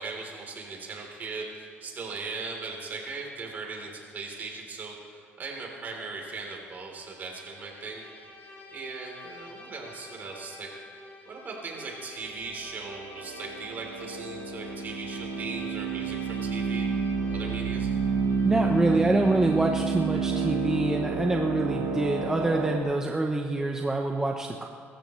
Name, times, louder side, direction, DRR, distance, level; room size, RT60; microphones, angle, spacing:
voice 1, 0.0-8.0 8.4-10.7 11.3-16.9 17.2-17.9, right 4 dB, 40° right, 0 dB, 3.5 m, -39 dB
Bowed string instrument, 6.8-20.7, left 2 dB, 45° left, 3.2 m, -48 dB
sound 1, 12.7-22.8, right 5 dB, 85° right, 2.1 m, -30 dB
voice 2, 18.4-24.7, right 2 dB, 10° right, 2 dB, 0.8 m, -26 dB
23.0 x 14.0 x 3.2 m, 2.3 s
cardioid pair, 115°, 5 cm